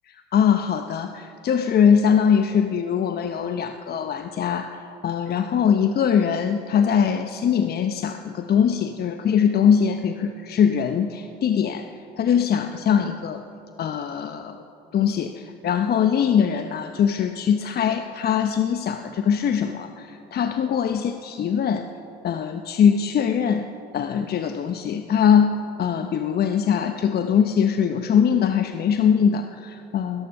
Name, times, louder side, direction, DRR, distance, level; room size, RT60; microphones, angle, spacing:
voice 1, 0.1-11.9 12.2-13.4 13.8-14.6 14.9-21.9 22.2-23.7 23.9-30.3, left 7 dB, 50° left, 8 dB, 0.7 m, -22 dB
16.5 x 13.5 x 5.7 m, 2.8 s
hypercardioid pair, 60°, 20 cm